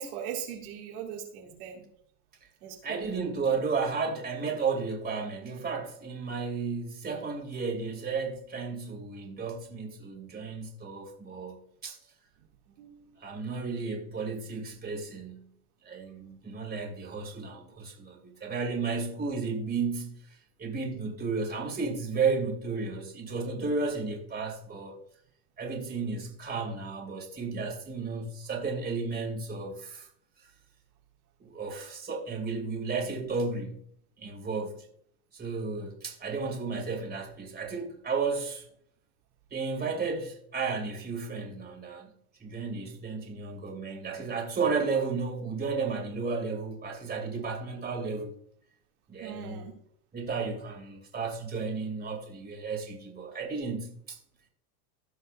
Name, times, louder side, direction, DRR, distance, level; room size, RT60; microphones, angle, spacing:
voice 1, 0.0-1.8 2.6-3.1 12.7-13.2 49.2-49.7, right 8 dB, 75° right, 2.3 m, -40 dB
voice 2, 2.8-12.0 13.2-15.5 15.8-25.0 25.6-30.1 30.4-30.5 31.4-33.8 34.2-34.8 35.3-38.7 39.5-42.1 42.4-48.3 49.1-49.7 50.1-54.2, right 4 dB, 20° right, 2.5 m, -33 dB
16.5 x 5.7 x 2.5 m
supercardioid pair, 110°, 46 cm